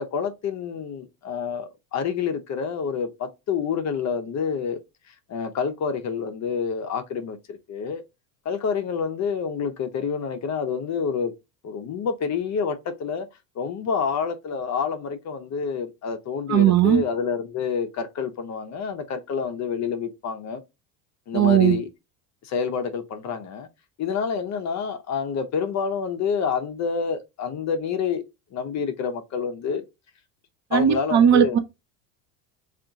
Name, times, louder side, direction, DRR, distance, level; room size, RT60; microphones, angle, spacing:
voice 1, 0.0-4.8 5.1-8.0 8.4-11.3 11.6-13.3 13.6-20.6 21.3-21.9 22.4-23.7 24.0-28.2 28.5-29.8 30.7-31.6, left 6 dB, 35° left, 0.6 m, -28 dB
voice 2, 16.5-17.0 21.3-21.8 30.7-31.6, right 9 dB, 35° right, 0.5 m, -17 dB
3.4 x 2.5 x 3.8 m
supercardioid pair, 105°, 50 cm